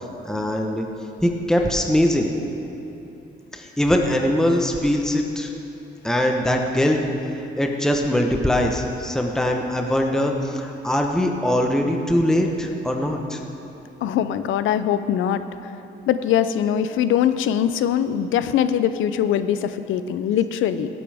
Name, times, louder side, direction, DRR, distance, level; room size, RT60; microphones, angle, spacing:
voice 1, 0.2-0.9 1.2-2.3 3.5-5.5 6.0-7.0 7.6-13.4, left 1 dB, 5° left, 2 dB, 1.0 m, -21 dB
voice 2, 14.0-15.7 16.1-20.9, left 9 dB, 80° left, 12 dB, 0.6 m, -22 dB
16.5 x 8.4 x 3.5 m, 2.9 s
cardioid pair, 90°, 20 cm